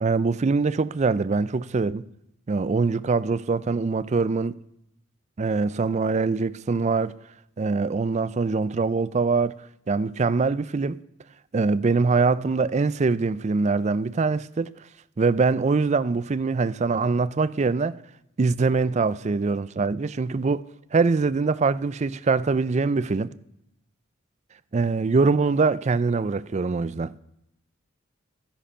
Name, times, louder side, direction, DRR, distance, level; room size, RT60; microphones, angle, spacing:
voice 1, 0.0-2.1 2.5-4.6 5.4-7.1 7.6-9.6 9.9-11.0 11.5-14.7 15.2-18.0 18.4-20.6 20.9-23.3 24.7-27.1, right 4 dB, 35° right, 0.4 m, -23 dB
13.0 x 10.0 x 5.5 m
head